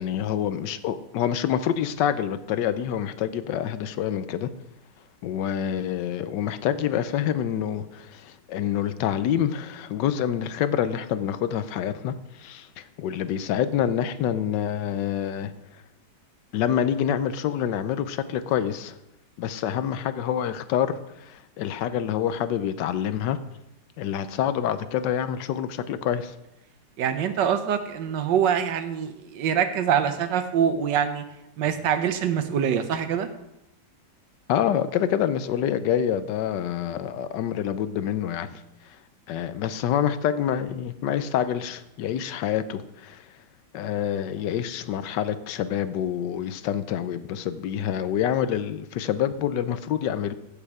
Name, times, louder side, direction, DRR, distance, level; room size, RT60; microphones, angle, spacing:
voice 1, 0.0-4.5 5.2-15.8 16.5-19.0 19.4-23.4 24.0-26.4 34.5-39.0 39.3-43.4 43.7-50.3, left 9 dB, 85° left, 12 dB, 1.3 m, -27 dB
voice 2, 27.0-31.2 31.6-33.3, right 8 dB, 85° right, 9 dB, 1.5 m, -24 dB
15.5 x 5.4 x 4.8 m, 0.88 s
omnidirectional pair, 1.9 m